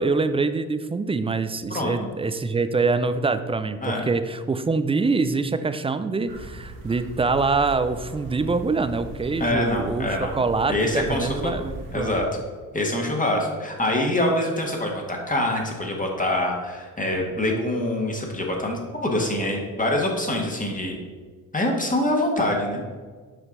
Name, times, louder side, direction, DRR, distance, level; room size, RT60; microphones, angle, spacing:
voice 1, 0.0-12.2, right 4 dB, 15° right, 11 dB, 0.4 m, -25 dB
sound 1, 6.3-12.2, right 2 dB, 70° right, 1.4 m, -38 dB
voice 2, 9.4-10.3 10.7-11.5 11.9-12.3 12.7-21.0 21.5-22.9, left 1 dB, 20° left, 0 dB, 1.4 m, -25 dB
7.0 x 4.4 x 3.8 m, 1.5 s
supercardioid pair, 60°, 37 cm